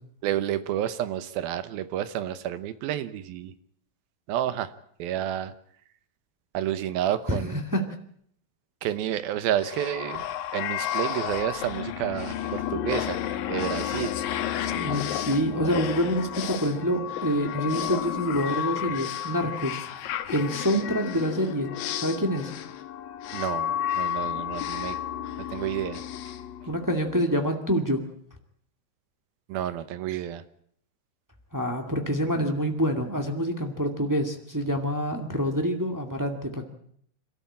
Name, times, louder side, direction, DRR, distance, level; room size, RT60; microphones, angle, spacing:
voice 1, 0.2-3.5 4.3-4.7 5.0-5.5 6.5-7.6 8.8-10.3 10.5-13.2 13.5-14.1 23.3-25.0 25.4-26.0 29.5-30.4, right 11 dB, 80° right, 13 dB, 2.8 m, -30 dB
voice 2, 7.3-7.9 14.7-19.8 20.3-21.7 22.0-22.5 26.7-28.0 31.5-36.6, equal, 15° right, 3 dB, 0.7 m, -26 dB
sound 1, 9.6-27.2, left 11 dB, 75° left, 2.8 m, -32 dB
26.5 x 13.5 x 8.7 m, 0.67 s
omnidirectional pair, 4.3 m